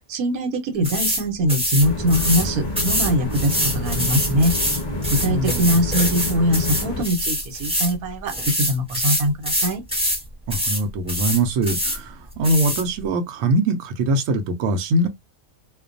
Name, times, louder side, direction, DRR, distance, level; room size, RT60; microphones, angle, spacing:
voice 1, 0.1-4.5 5.1-9.8, equal, 85° right, 1.2 m, -22 dB
sound 1, 0.8-1.2 1.5-2.5 2.8-7.9 8.3-10.2 10.5-10.8 11.1-12.0 12.4-12.8, equal, 5° right, 0.9 m, -24 dB
sound 2, 1.8-7.0, left 1 dB, 45° left, 0.5 m, -28 dB
voice 2, 5.2-5.8 10.5-15.1, right 2 dB, 65° right, 0.9 m, -22 dB
2.4 x 2.2 x 2.5 m
omnidirectional pair, 1.5 m